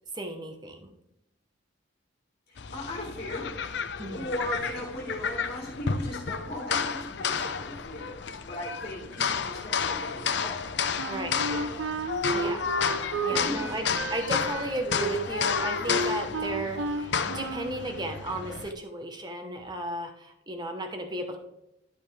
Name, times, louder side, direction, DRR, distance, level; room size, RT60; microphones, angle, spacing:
voice 1, 0.1-0.9 4.0-4.3 11.1-11.4 12.3-21.4, right 1 dB, 20° right, 5 dB, 1.0 m, -35 dB
voice 2, 2.5-3.6 3.9-10.7 11.5-11.9 13.3-14.0, left 1 dB, 40° left, -2 dB, 2.0 m, -37 dB
sound 1, 2.6-18.7, left 6 dB, 60° left, 0.5 m, -31 dB
Wind instrument woodwind instrument, 11.0-17.8, right 3 dB, 80° right, 0.8 m, -33 dB
11.5 x 5.2 x 3.3 m, 0.81 s
head